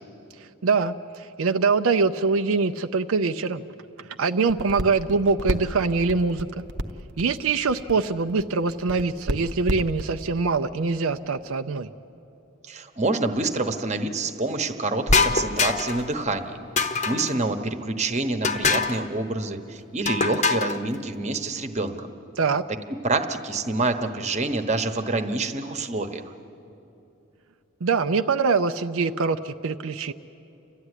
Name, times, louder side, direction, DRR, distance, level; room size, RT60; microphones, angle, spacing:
voice 1, 0.6-3.6 4.2-6.5 7.2-11.9 22.4-22.6 27.8-30.1, right 4 dB, 80° right, 8 dB, 0.6 m, -23 dB
sound 1, 4.5-10.3, right 1 dB, 55° right, 0.9 m, -30 dB
voice 2, 12.6-22.1 22.7-26.3, right 2 dB, 35° right, 8 dB, 1.1 m, -27 dB
sound 2, 15.1-16.1 16.8-17.4 18.4-19.0 20.1-20.8, left 4 dB, 35° left, 0.8 m, -23 dB
29.5 x 13.0 x 9.9 m, 2.8 s
head